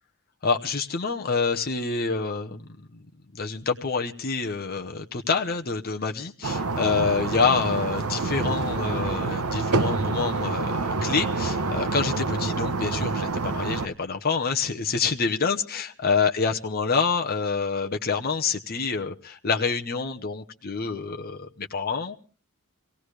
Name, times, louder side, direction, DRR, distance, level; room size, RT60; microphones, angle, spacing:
voice 1, 0.4-3.0 3.3-22.2, left 5 dB, 45° left, 4 dB, 0.9 m, -27 dB
sound 1, 6.4-13.9, right 3 dB, 85° right, 0.9 m, -27 dB
25.5 x 17.0 x 3.2 m, 0.36 s
head